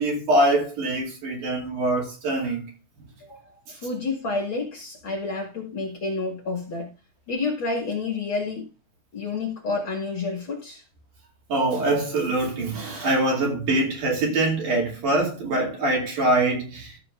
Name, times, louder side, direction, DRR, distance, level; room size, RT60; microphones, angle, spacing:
voice 1, 0.0-2.7 11.5-17.0, right 2 dB, 65° right, 4.3 m, -24 dB
voice 2, 3.2-6.9 7.3-8.7 9.1-10.8, left 3 dB, 45° left, 2.2 m, -29 dB
14.0 x 7.5 x 2.5 m
omnidirectional pair, 3.8 m